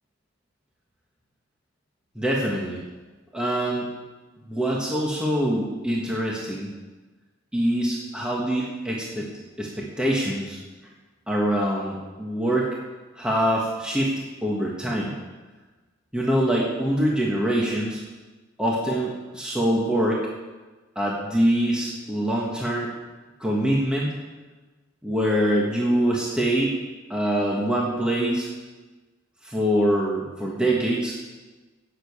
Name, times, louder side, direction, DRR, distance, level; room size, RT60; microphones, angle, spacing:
voice 1, 2.1-2.8 3.3-3.9 4.5-6.7 7.5-9.3 9.6-10.6 11.3-12.7 13.2-14.1 14.4-15.1 16.1-18.0 18.6-20.2 20.9-22.9 23.4-24.1 25.0-26.7 27.1-28.5 29.4-31.2, right 1 dB, 5° right, -4 dB, 1.5 m, -24 dB
11.5 x 7.7 x 8.5 m, 1.3 s
head